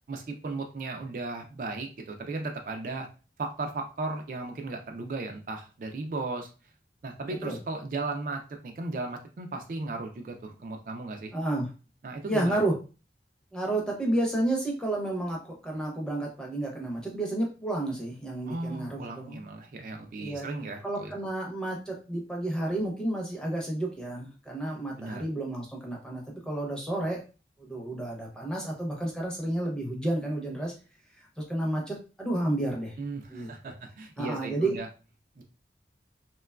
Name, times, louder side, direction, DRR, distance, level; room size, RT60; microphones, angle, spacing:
voice 1, 0.1-3.1 3.4-6.5 7.0-11.3 12.0-12.6 18.5-21.1 25.0-25.2 33.0-34.9 35.4-35.5, right 3 dB, 50° right, 4 dB, 0.3 m, -36 dB
voice 2, 11.3-11.7 12.3-12.7 13.5-19.5 20.2-20.5 20.8-27.2 27.6-30.7 31.2-33.0 33.3-33.5 34.2-34.8, right 1 dB, 5° left, -2 dB, 0.6 m, -31 dB
2.9 x 2.2 x 2.2 m, 0.33 s
head